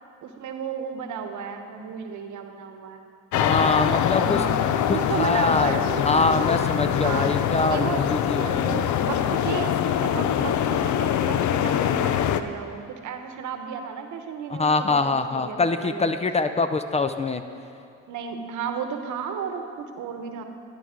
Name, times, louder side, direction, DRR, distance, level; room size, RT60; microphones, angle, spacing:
voice 1, 0.2-3.0 4.1-6.3 7.0-7.3 7.6-8.0 8.4-16.1 18.1-20.4, right 6 dB, 75° right, 6 dB, 1.0 m, -33 dB
sound 1, 3.3-12.4, left 10 dB, 70° left, 0.5 m, -23 dB
voice 2, 3.3-4.4 4.9-8.5 14.5-17.4, left 3 dB, 20° left, 10 dB, 0.4 m, -24 dB
12.0 x 9.9 x 3.7 m, 2.6 s
cardioid pair, 90°, 30 cm